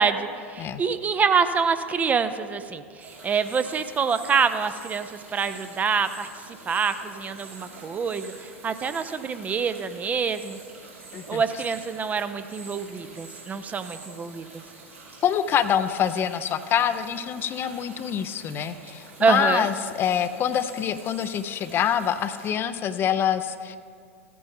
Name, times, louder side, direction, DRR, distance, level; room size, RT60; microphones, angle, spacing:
voice 1, 0.0-6.3 6.7-10.6 11.3-14.5 19.2-19.7, right 5 dB, 20° right, 11 dB, 0.5 m, -26 dB
sound 1, 3.0-22.5, right 3 dB, 85° right, 3.1 m, -46 dB
voice 2, 15.2-23.8, left 9 dB, 30° left, 12 dB, 0.5 m, -25 dB
15.0 x 9.3 x 3.6 m, 2.1 s
figure-of-eight pair, 85°, 7 cm